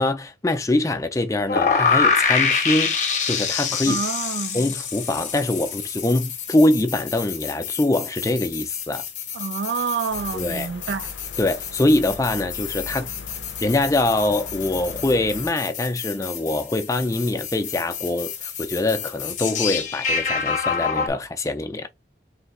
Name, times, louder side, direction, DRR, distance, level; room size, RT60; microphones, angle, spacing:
voice 1, 0.0-3.0 3.2-4.0 4.5-9.0 10.3-10.7 11.4-13.1 13.6-21.9, left 2 dB, 20° left, 0.4 m, -23 dB
Turn on search device, 1.5-21.1, left 6 dB, 40° left, 0.8 m, -27 dB
voice 2, 3.9-4.6 9.3-11.1, right 6 dB, 70° right, 0.4 m, -28 dB
sound 1, 10.1-15.5, left 3 dB, 90° left, 0.5 m, -40 dB
3.3 x 2.7 x 4.1 m
head